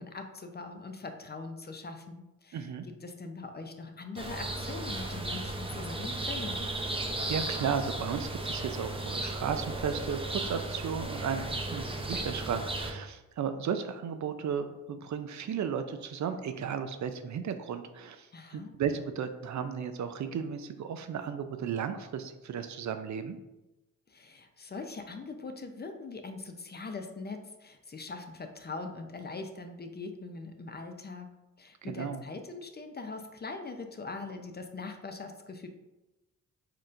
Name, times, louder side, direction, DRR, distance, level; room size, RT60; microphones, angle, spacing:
voice 1, 0.0-6.7 18.3-18.7 24.1-31.3 31.6-35.7, left 3 dB, 30° left, 6 dB, 0.5 m, -42 dB
voice 2, 2.5-2.9 7.3-23.4 31.8-32.2, right 7 dB, 55° right, 8 dB, 0.4 m, -34 dB
sound 1, 4.2-12.9, right 2 dB, 15° right, 0.6 m, -35 dB
4.4 x 3.7 x 2.5 m, 1.0 s
cardioid pair, 60°, 35 cm